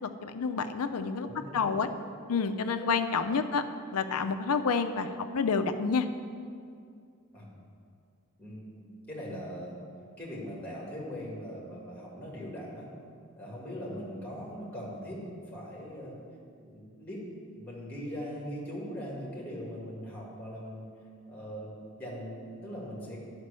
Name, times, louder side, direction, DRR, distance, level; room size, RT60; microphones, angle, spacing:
voice 1, 0.0-1.3 1.5-1.9 2.3-3.6 3.9-6.1, left 5 dB, 80° left, 8 dB, 0.5 m, -29 dB
voice 2, 1.2-2.1 2.8-2.9 7.3-7.5 8.4-9.7 10.2-12.9 13.4-15.2 15.5-16.2 16.6-17.2 17.5-20.9 21.3-21.7 22.0-23.2, equal, 5° left, -4 dB, 1.9 m, -40 dB
9.6 x 5.2 x 6.7 m, 2.3 s
head